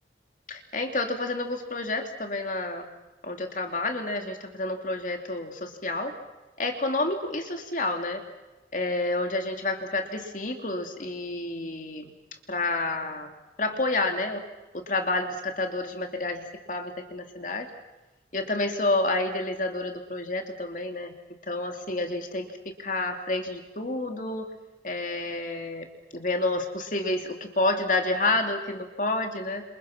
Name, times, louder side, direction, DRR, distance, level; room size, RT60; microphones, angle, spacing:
voice 1, 0.5-2.9 3.2-6.1 6.6-8.2 8.7-12.1 12.5-13.3 13.6-14.4 14.7-17.7 18.3-21.1 21.5-22.5 22.8-24.5 24.8-25.9 26.1-29.6, left 2 dB, 45° left, 4 dB, 2.7 m, -29 dB
30.0 x 27.5 x 5.9 m, 1.0 s
head